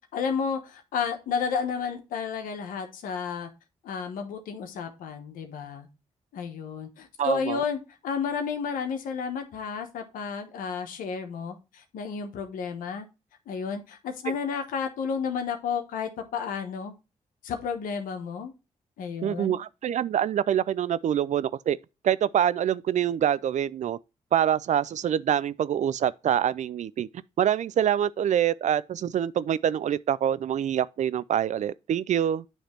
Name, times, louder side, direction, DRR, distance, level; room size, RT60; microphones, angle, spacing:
voice 1, 0.1-3.5 3.8-5.9 6.3-13.1 13.5-16.9 17.4-18.5 19.0-19.6, left 6 dB, 85° left, 1.1 m, -32 dB
voice 2, 7.2-7.6 14.3-14.4 19.2-21.8 22.0-24.0 24.3-27.1 27.4-32.4, right 10 dB, 60° right, 0.4 m, -25 dB
8.9 x 3.3 x 4.3 m
supercardioid pair, 55°, 14 cm